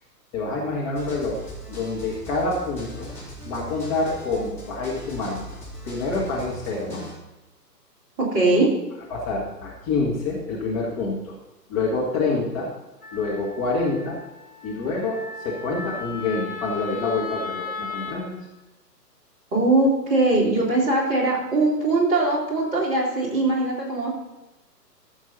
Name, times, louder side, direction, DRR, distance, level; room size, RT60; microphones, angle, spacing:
voice 1, 0.3-1.4 1.7-3.1 3.5-5.4 5.8-7.0 9.1-11.3 11.7-12.7 13.1-14.2 14.6-18.4, left 3 dB, 20° left, -4 dB, 1.6 m, -27 dB
sound 1, 0.9-7.1, right 1 dB, 5° left, 4.2 m, -40 dB
voice 2, 8.2-8.7 19.5-24.2, right 2 dB, 15° right, -5 dB, 2.7 m, -21 dB
Wind instrument woodwind instrument, 13.0-18.2, left 5 dB, 70° left, 4.6 m, -36 dB
14.5 x 7.1 x 4.1 m, 1.0 s
figure-of-eight pair, 130°, 49 cm